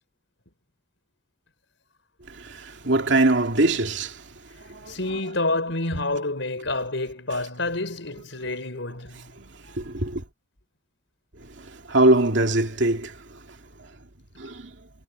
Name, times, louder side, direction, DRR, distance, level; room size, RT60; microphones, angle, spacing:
voice 1, 2.3-4.2 4.7-5.2 9.4-10.2 11.6-13.4 14.4-14.7, right 2 dB, 70° right, 2.4 m, -23 dB
voice 2, 4.9-9.3, left 2 dB, 75° left, 4.8 m, -28 dB
head